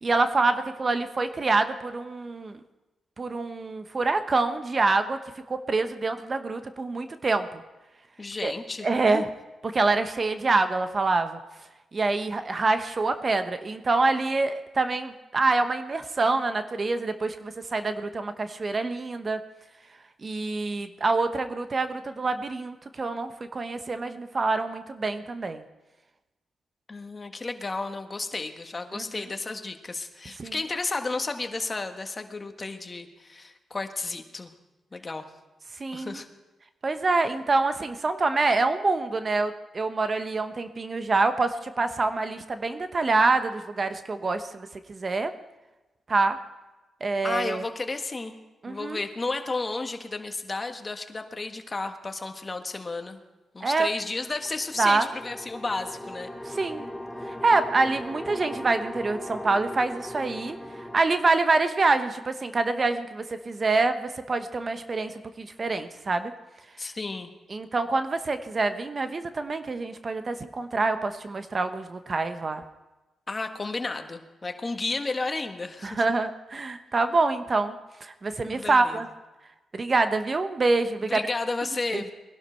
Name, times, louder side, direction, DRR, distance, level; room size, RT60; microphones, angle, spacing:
voice 1, 0.0-2.6 3.2-5.2 5.5-7.5 8.4-8.5 8.8-9.3 9.6-11.4 11.9-19.4 20.2-25.6 28.9-29.0 30.4-30.5 35.8-36.2 36.8-45.3 46.1-46.4 47.0-47.6 48.6-49.0 53.6-53.9 54.8-55.1 56.5-56.9 57.2-60.6 60.9-66.3 67.5-72.6 75.8-77.7 78.0-79.1 79.7-81.2 81.9-82.0, right 3 dB, 40° right, 9 dB, 1.0 m, -26 dB
voice 2, 8.2-9.2 26.9-34.5 34.9-35.3 35.9-36.3 47.2-48.4 48.7-53.2 53.5-56.3 66.8-67.3 73.3-76.0 78.4-79.0 81.0-82.1, left 3 dB, 30° left, 6 dB, 1.5 m, -32 dB
sound 1, 54.1-61.0, left 1 dB, 10° left, 1.2 m, -38 dB
20.0 x 11.5 x 4.5 m, 1.1 s
cardioid pair, 60°, 0 cm